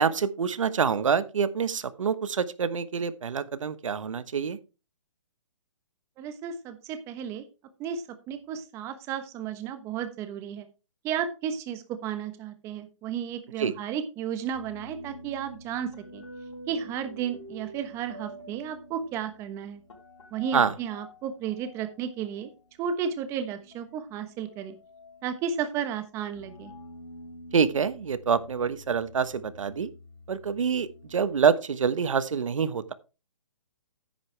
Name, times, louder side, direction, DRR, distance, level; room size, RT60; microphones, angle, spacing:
voice 1, 0.0-4.6 13.6-13.7 20.5-20.7 27.5-29.9 30.3-32.9, right 6 dB, 80° right, 1.2 m, -26 dB
voice 2, 6.2-7.4 7.8-10.7 11.0-16.2 16.7-19.8 20.3-22.5 22.8-24.8 25.2-26.7, right 8 dB, 15° right, 1.1 m, -33 dB
sound 1, 14.5-22.8 23.4-31.5, left 1 dB, 70° left, 4.0 m, -48 dB
9.8 x 9.4 x 3.4 m
hypercardioid pair, 160°, 16 cm